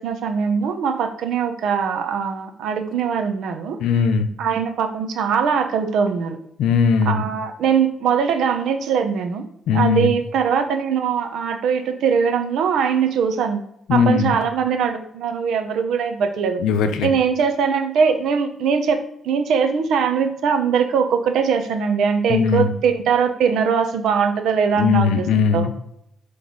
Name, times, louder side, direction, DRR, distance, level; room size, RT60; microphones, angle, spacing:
voice 1, 0.0-3.8 4.4-6.4 7.0-9.4 9.7-13.6 13.9-16.6 17.0-25.3 25.5-25.7, right 6 dB, 75° right, 7 dB, 0.9 m, -21 dB
voice 2, 3.8-4.3 6.6-7.2 9.7-10.1 13.9-14.3 16.6-17.1 22.3-22.7 24.8-25.9, left 6 dB, 85° left, 7 dB, 0.7 m, -19 dB
6.1 x 3.4 x 5.3 m, 0.73 s
cardioid pair, 90°, 0 cm